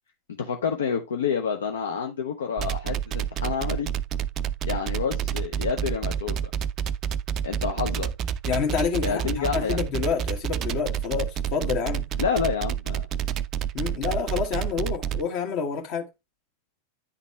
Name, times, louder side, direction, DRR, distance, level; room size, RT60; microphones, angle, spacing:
voice 1, 0.4-3.9 4.7-6.4 7.4-8.1 9.0-9.8 12.2-13.0, left 6 dB, 65° left, 0.7 m, -28 dB
sound 1, 2.6-15.2, right 8 dB, 30° right, 0.4 m, -28 dB
voice 2, 8.4-12.1 13.7-16.1, left 6 dB, 45° left, 1.4 m, -28 dB
9.8 x 4.0 x 3.1 m
figure-of-eight pair, 90°, 0 cm